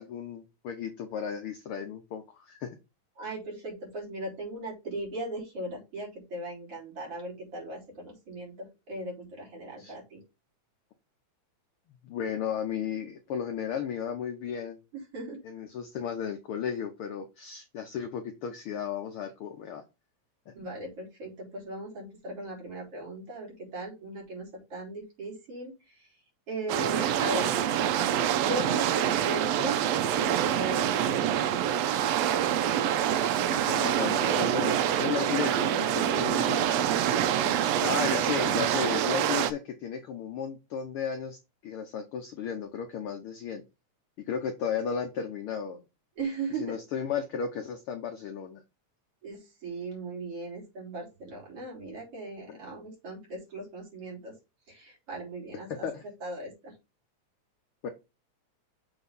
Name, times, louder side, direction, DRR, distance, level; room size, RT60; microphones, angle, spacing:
voice 1, 0.0-2.7 9.8-9.9 12.0-14.8 15.4-19.8 20.5-20.6 33.4-36.9 37.8-43.6 44.3-45.8 46.5-48.6 52.5-52.6 55.7-56.0 57.8-57.9, left 7 dB, 70° left, 6 dB, 1.4 m, -34 dB
voice 2, 3.2-10.2 15.1-15.4 20.6-25.7 26.5-27.6 28.4-29.8 30.2-31.4 37.2-37.6 46.2-46.8 49.2-54.3 54.7-55.9 56.2-56.7, right 2 dB, 50° right, -2 dB, 4.4 m, -38 dB
sound 1, 26.7-39.5, right 10 dB, 75° right, 1.7 m, -26 dB
7.0 x 3.9 x 5.4 m, 0.25 s
omnidirectional pair, 3.4 m